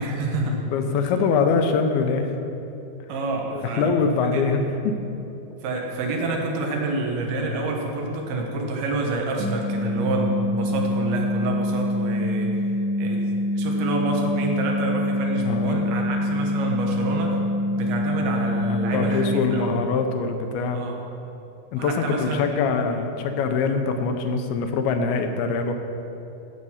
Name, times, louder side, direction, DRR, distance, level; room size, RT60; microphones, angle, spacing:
voice 1, 0.0-0.6 3.1-3.9 4.2-4.5 5.6-12.5 13.0-17.4 17.7-19.7 20.7-21.0 21.8-22.6, right 2 dB, 75° right, 0 dB, 3.1 m, -28 dB
voice 2, 0.7-2.3 3.5-5.0 15.5-16.0 18.7-20.8 21.7-25.7, left 4 dB, 80° left, 6 dB, 2.6 m, -24 dB
sound 1, 9.4-19.4, left 1 dB, 55° right, 2.5 m, -25 dB
14.5 x 6.5 x 5.6 m, 3.0 s
omnidirectional pair, 4.5 m